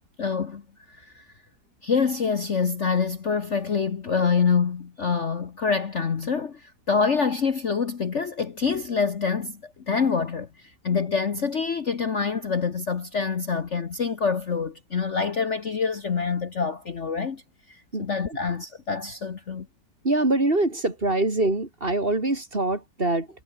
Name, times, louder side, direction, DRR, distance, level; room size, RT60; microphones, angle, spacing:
voice 1, 0.2-0.6 0.9-1.2 1.8-17.4 17.7-19.7, left 5 dB, 45° left, 1.4 m, -26 dB
voice 2, 20.0-23.3, right 2 dB, 30° right, 3.7 m, -24 dB
omnidirectional pair, 2.0 m